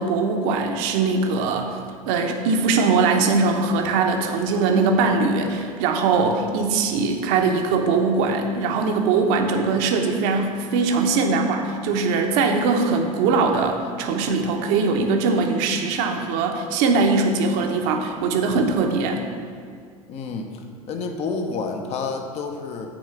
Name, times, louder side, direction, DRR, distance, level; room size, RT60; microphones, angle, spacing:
voice 1, 0.0-1.8 2.1-19.2, right 4 dB, 50° right, 4 dB, 0.9 m, -21 dB
voice 2, 20.1-20.6 20.9-23.0, left 4 dB, 35° left, 5 dB, 0.9 m, -29 dB
8.9 x 4.7 x 5.9 m, 2.1 s
figure-of-eight pair, 80°, 18 cm